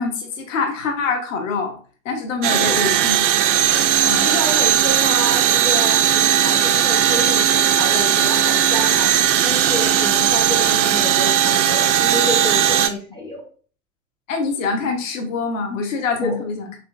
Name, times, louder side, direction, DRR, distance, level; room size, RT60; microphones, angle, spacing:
voice 1, 0.0-1.8 2.0-3.2 4.0-4.4 14.3-16.7, left 4 dB, 65° left, 3 dB, 0.9 m, -24 dB
sound 1, 2.4-12.9, right 10 dB, 60° right, 0.5 m, -17 dB
voice 2, 2.5-3.0 4.2-13.4 16.2-16.4, left 1 dB, 10° left, -3 dB, 0.4 m, -29 dB
3.8 x 3.2 x 2.3 m, 0.40 s
figure-of-eight pair, 85°, 42 cm